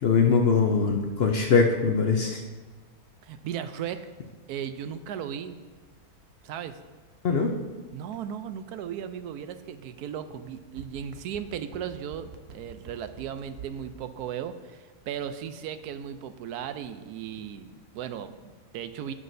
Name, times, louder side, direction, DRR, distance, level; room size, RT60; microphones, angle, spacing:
voice 1, 0.0-2.4 7.2-7.5, left 5 dB, 55° left, 2 dB, 0.7 m, -22 dB
voice 2, 3.2-4.0 4.5-5.6 6.4-6.8 7.9-19.1, right 9 dB, 80° right, 10 dB, 1.1 m, -36 dB
sound 1, 10.5-13.9 14.2-14.3, right 7 dB, 55° right, 0.8 m, -45 dB
16.5 x 6.2 x 2.6 m, 1.3 s
omnidirectional pair, 1.6 m